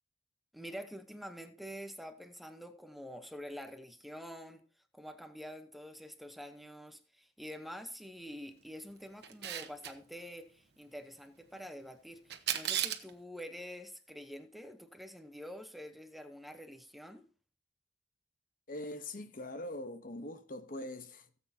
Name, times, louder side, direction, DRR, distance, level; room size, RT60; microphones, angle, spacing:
voice 1, 0.5-4.6 4.9-17.2, equal, ahead, 0.9 m, -47 dB
Camera, 9.2-9.9 12.3-13.1, right 10 dB, 65° right, 1.2 m, -34 dB
voice 2, 18.7-21.3, left 1 dB, 50° left, 1.0 m, -42 dB
17.5 x 8.1 x 2.8 m
head